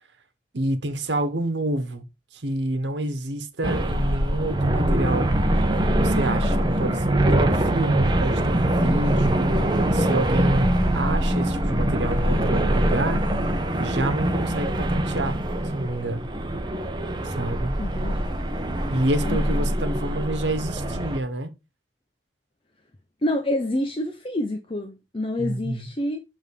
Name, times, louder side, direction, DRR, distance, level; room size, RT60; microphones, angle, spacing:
voice 1, 0.5-2.0 2.3-5.3 5.9-13.3 13.8-15.4 15.7-16.3 17.2-17.8 18.9-21.5 25.4-25.9, right 1 dB, 90° right, 1.3 m, -28 dB
sound 1, 3.6-21.2, right 1 dB, 25° right, 0.9 m, -23 dB
voice 2, 17.8-18.3 19.2-19.6 23.2-26.2, left 1 dB, 30° left, 0.7 m, -28 dB
7.1 x 3.7 x 4.9 m
head